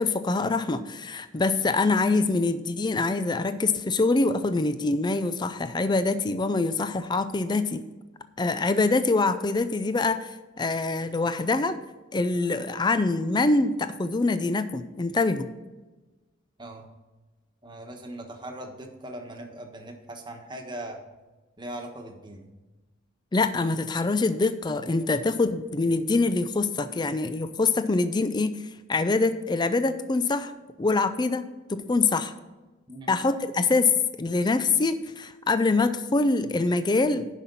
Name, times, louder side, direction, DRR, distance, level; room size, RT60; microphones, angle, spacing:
voice 1, 0.0-7.8 8.4-11.8 12.1-15.5 23.3-28.6 28.9-30.5 30.8-32.3 33.1-37.3, left 3 dB, 20° left, 11 dB, 0.4 m, -24 dB
voice 2, 17.6-21.0 21.6-22.5 32.9-33.1, right 1 dB, 25° right, 3 dB, 1.3 m, -40 dB
10.0 x 5.9 x 5.4 m, 1.2 s
head